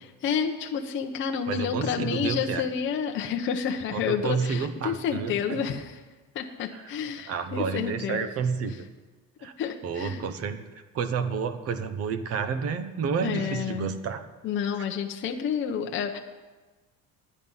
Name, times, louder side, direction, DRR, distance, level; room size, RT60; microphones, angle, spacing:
voice 1, 0.2-5.9 6.3-8.3 9.6-10.2 13.2-13.9 14.4-16.2, left 7 dB, 35° left, 4 dB, 0.8 m, -29 dB
voice 2, 1.5-2.7 3.9-5.6 6.7-6.8 7.3-8.8 9.4-9.5 9.8-10.6 10.9-14.2, right 6 dB, 40° right, 10 dB, 0.8 m, -30 dB
10.5 x 10.5 x 5.5 m, 1.2 s
cardioid pair, 155°, 35 cm